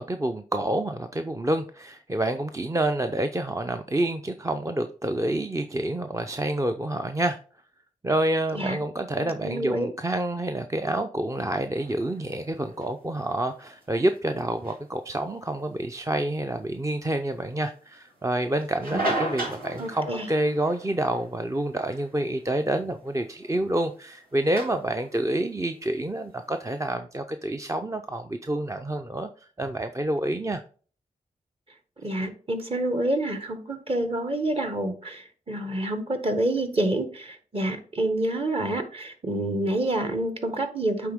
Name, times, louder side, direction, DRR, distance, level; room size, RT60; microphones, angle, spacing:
voice 1, 0.0-7.4 8.0-29.3 29.6-30.6, right 1 dB, 20° right, 7 dB, 0.6 m, -28 dB
voice 2, 9.4-9.9 18.9-19.1 19.8-20.2 32.0-41.1, right 1 dB, 40° right, 7 dB, 1.7 m, -28 dB
sound 1, 11.8-26.9, right 2 dB, 80° right, 2.4 m, -38 dB
9.3 x 3.6 x 3.6 m, 0.41 s
cardioid pair, 45°, 15 cm